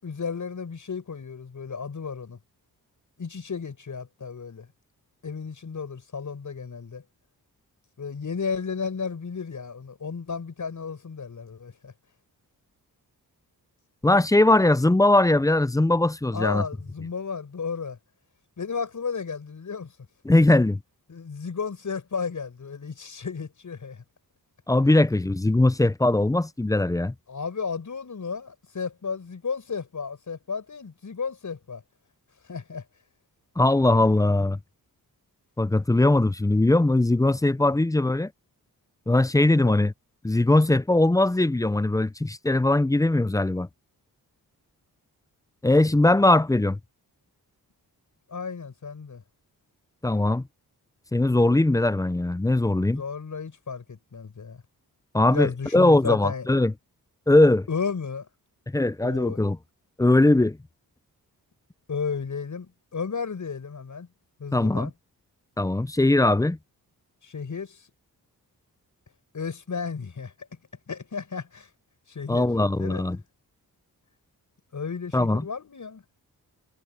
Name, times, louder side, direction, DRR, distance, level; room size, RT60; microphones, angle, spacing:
voice 1, 0.0-2.4 3.2-4.7 5.2-7.0 8.0-11.9 16.3-18.0 18.6-19.9 21.1-24.0 27.3-31.8 32.5-32.8 36.1-36.2 39.6-39.8 48.3-49.2 52.9-54.6 55.3-56.5 57.7-58.3 59.0-59.4 61.9-64.1 64.4-64.9 67.2-67.8 69.3-70.3 70.9-71.7 72.1-72.5 72.8-73.0 74.7-76.0, left 5 dB, 50° left, 6.7 m, -33 dB
voice 2, 14.0-16.6 20.2-20.8 24.7-27.1 33.6-34.6 35.6-38.3 39.1-39.9 40.2-43.7 45.6-46.8 50.0-50.4 51.1-53.0 55.1-56.7 57.3-57.7 58.7-59.6 60.0-60.6 64.5-64.9 65.6-66.6 72.3-73.2 75.1-75.5, left 2 dB, 10° left, 0.5 m, -20 dB
wide cardioid pair, 95°, 37 cm